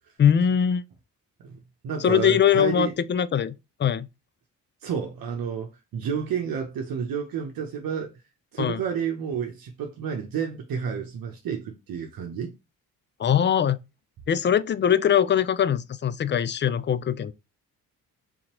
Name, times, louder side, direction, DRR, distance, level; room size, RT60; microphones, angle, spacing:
voice 1, 0.2-0.8 2.0-3.5 3.8-4.1 8.6-8.8 13.2-13.8 14.3-17.3, left 8 dB, 30° left, 0.4 m, -22 dB
voice 2, 1.4-2.9 4.8-8.1 8.5-12.5, right 7 dB, 65° right, 0.8 m, -30 dB
3.9 x 2.9 x 2.9 m
supercardioid pair, 55°, 37 cm